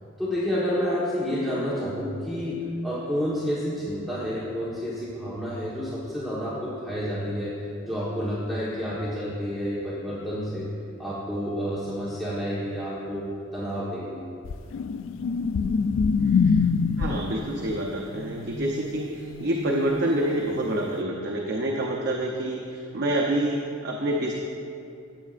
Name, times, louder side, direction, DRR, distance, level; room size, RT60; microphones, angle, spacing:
voice 1, 0.2-2.6 2.8-7.5 7.8-10.7 11.0-13.3 13.5-14.2, equal, ahead, -10 dB, 1.2 m, -29 dB
sound 1, 14.5-17.4 20.2-20.4, left 5 dB, 65° left, 0.3 m, -23 dB
sound 2, 14.9-19.9, left 2 dB, 85° left, 0.8 m, -43 dB
voice 2, 16.2-16.6 17.0-24.4, right 1 dB, 55° right, -1 dB, 0.7 m, -27 dB
14.5 x 8.3 x 2.5 m, 2.5 s
head